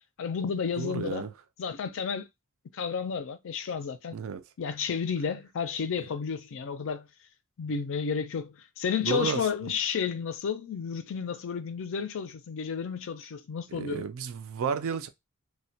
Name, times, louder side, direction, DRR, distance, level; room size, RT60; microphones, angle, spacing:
voice 1, 0.2-1.2 1.6-2.2 2.7-4.2 4.6-7.1 7.6-14.0, left 6 dB, 65° left, 0.4 m, -32 dB
voice 2, 0.8-1.3 4.1-4.4 9.0-9.7 13.7-15.1, right 6 dB, 65° right, 0.3 m, -32 dB
2.2 x 2.1 x 2.6 m
head